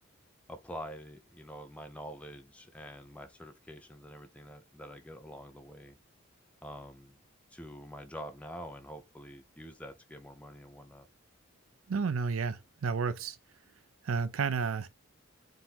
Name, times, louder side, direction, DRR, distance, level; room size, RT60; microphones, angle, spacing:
voice 1, 0.5-6.0 6.6-7.2 7.5-11.1, equal, 5° left, 0.5 m, -46 dB
voice 2, 11.9-13.4 14.0-14.9, right 5 dB, 90° right, 0.5 m, -31 dB
3.7 x 2.5 x 4.3 m
head